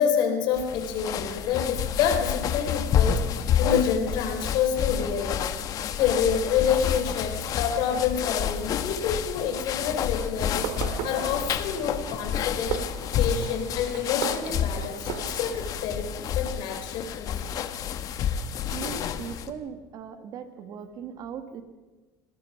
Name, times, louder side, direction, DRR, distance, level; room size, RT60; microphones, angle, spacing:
voice 1, 0.0-10.7 11.0-12.8 13.2-17.3, left 7 dB, 65° left, 5 dB, 4.3 m, -28 dB
sound 1, 0.5-19.5, left 8 dB, 45° left, 1.4 m, -29 dB
Fireworks, 10.4-15.7, right 9 dB, 80° right, 2.3 m, -37 dB
voice 2, 18.7-21.6, right 7 dB, 50° right, 8 dB, 2.0 m, -38 dB
26.0 x 18.0 x 5.9 m, 1.2 s
cardioid pair, 140°, 8 cm